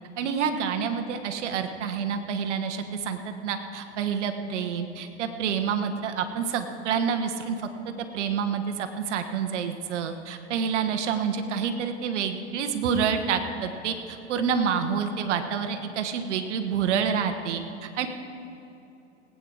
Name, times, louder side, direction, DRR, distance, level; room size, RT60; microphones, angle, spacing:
voice 1, 0.2-7.6 8.1-18.1, right 7 dB, 70° right, 8 dB, 1.3 m, -28 dB
19.0 x 8.9 x 4.9 m, 2.8 s
hypercardioid pair, 100°, 36 cm